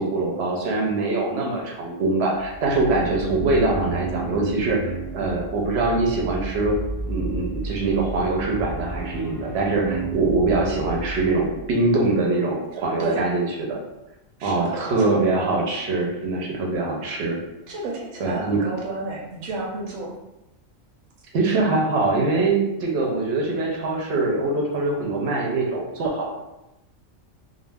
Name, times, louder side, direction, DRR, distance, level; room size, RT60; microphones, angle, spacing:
voice 1, 0.0-6.8 7.1-13.8 14.4-17.4 18.2-18.6 21.3-26.3, right 3 dB, 65° right, -1 dB, 0.8 m, -23 dB
sound 1, 2.4-11.7, right 3 dB, 40° right, 0.4 m, -32 dB
voice 2, 14.4-15.2 17.7-20.1, right 3 dB, 90° right, -2 dB, 1.0 m, -31 dB
2.4 x 2.0 x 3.3 m, 0.93 s
omnidirectional pair, 1.4 m